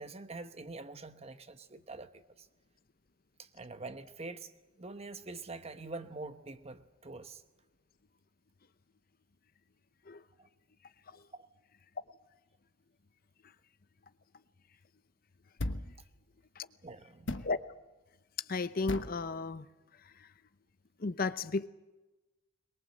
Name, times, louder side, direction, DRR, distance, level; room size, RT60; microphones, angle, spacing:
voice 1, 0.0-2.5 3.4-4.5 4.8-7.4 10.4-10.5 11.3-11.5 16.8-17.3, right 3 dB, 30° right, 1.0 m, -45 dB
sound 1, 15.6-16.0 17.3-17.6 18.9-19.2, left 2 dB, 65° left, 1.2 m, -36 dB
voice 2, 18.5-19.7 20.2-20.3 21.0-21.7, left 3 dB, 45° left, 0.7 m, -33 dB
23.0 x 22.5 x 7.7 m
head